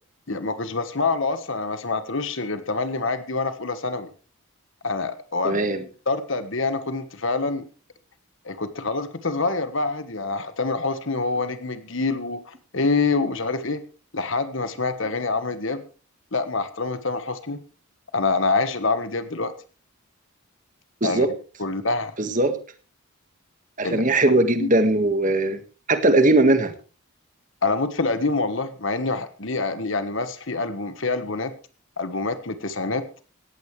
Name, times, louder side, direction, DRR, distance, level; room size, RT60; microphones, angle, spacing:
voice 1, 0.3-4.1 4.8-5.7 6.1-7.7 8.4-13.8 14.1-15.8 16.3-17.6 18.1-19.5 21.0-21.3 21.6-22.1 23.8-24.0 24.6-24.7 27.6-31.5 32.0-33.0, left 3 dB, 55° left, 10 dB, 1.4 m, -26 dB
voice 2, 5.4-5.8 21.0-21.3 22.2-22.5 23.8-25.6 25.9-26.7, right 2 dB, 35° right, 8 dB, 1.8 m, -19 dB
18.0 x 15.5 x 3.3 m, 0.36 s
head